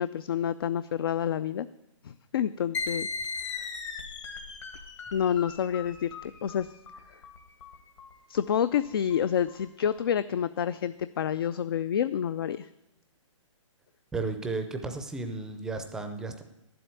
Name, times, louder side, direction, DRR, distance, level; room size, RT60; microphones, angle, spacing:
voice 1, 0.0-1.7 2.0-3.1 5.1-6.1 6.4-6.7 8.3-12.7, left 9 dB, 45° left, 14 dB, 0.4 m, -28 dB
sound 1, 2.7-10.0, left 4 dB, 65° left, 2.2 m, -38 dB
voice 2, 14.1-16.4, right 3 dB, 5° right, 7 dB, 0.5 m, -33 dB
11.0 x 7.8 x 9.4 m, 0.89 s
hypercardioid pair, 165°, 17 cm